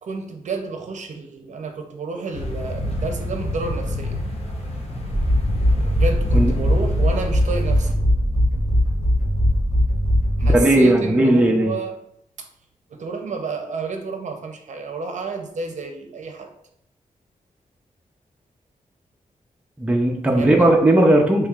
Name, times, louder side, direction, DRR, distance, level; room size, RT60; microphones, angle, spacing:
voice 1, 0.0-4.2 5.9-8.0 10.4-12.0 12.9-16.5 20.3-20.7, right 4 dB, 60° right, 4 dB, 0.7 m, -30 dB
sound 1, 2.3-7.9, left 1 dB, 45° left, 0.8 m, -28 dB
sound 2, 5.1-10.9, equal, 75° left, 1.4 m, -20 dB
voice 2, 10.4-11.7 19.8-21.5, right 1 dB, 10° right, 0 dB, 0.6 m, -17 dB
6.2 x 3.1 x 2.4 m, 0.74 s
wide cardioid pair, 140°, 14 cm